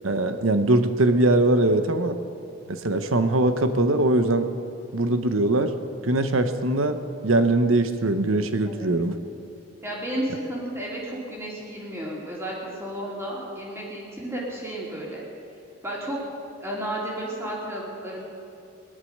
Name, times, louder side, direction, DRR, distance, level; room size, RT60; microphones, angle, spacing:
voice 1, 0.0-2.2 2.7-4.5 4.9-5.7 6.0-9.2, right 2 dB, 80° right, 9 dB, 1.0 m, -21 dB
voice 2, 9.8-15.2 15.8-16.2 16.4-18.2, right 1 dB, 10° right, -4 dB, 3.2 m, -32 dB
19.0 x 11.5 x 6.6 m, 2.6 s
head